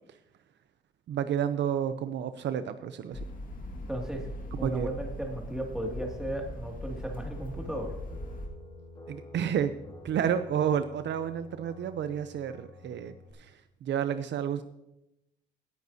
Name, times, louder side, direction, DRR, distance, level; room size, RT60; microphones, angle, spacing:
voice 1, 1.1-3.3 4.6-4.9 9.1-9.7 10.0-13.5 13.8-14.6, right 9 dB, 65° right, 11 dB, 0.6 m, -30 dB
sound 1, 3.1-8.5, equal, 45° left, 2.0 m, -40 dB
voice 2, 3.9-4.3 4.6-8.0, right 1 dB, 5° right, 1 dB, 2.3 m, -35 dB
sound 2, 6.3-13.3, left 2 dB, 25° left, 2.5 m, -50 dB
17.5 x 9.2 x 2.8 m, 0.89 s
cardioid pair, 90°, 20 cm